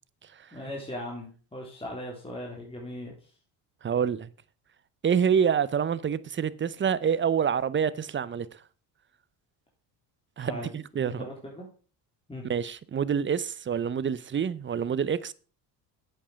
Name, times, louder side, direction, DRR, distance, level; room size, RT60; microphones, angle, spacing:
voice 1, 0.5-3.1 10.5-10.7 10.9-11.6 12.3-12.4, left 1 dB, 10° left, 3.3 m, -38 dB
voice 2, 3.8-4.3 5.0-8.6 10.4-11.3 12.4-15.3, right 7 dB, 25° right, 0.6 m, -27 dB
8.4 x 7.8 x 5.0 m
hypercardioid pair, 75°, 49 cm